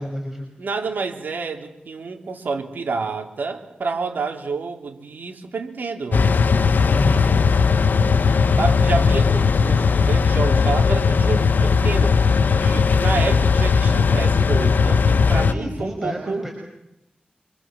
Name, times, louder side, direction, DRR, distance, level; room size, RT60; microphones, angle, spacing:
voice 1, 0.0-0.5 6.9-7.3 15.3-16.5, equal, 10° right, 1 dB, 6.3 m, -30 dB
voice 2, 0.6-6.2 8.6-12.2 12.6-16.5, right 4 dB, 85° right, 4 dB, 3.2 m, -28 dB
sound 1, 6.1-15.5, left 5 dB, 90° left, 1.0 m, -17 dB
27.5 x 26.0 x 7.5 m, 0.85 s
wide cardioid pair, 70°, 3 cm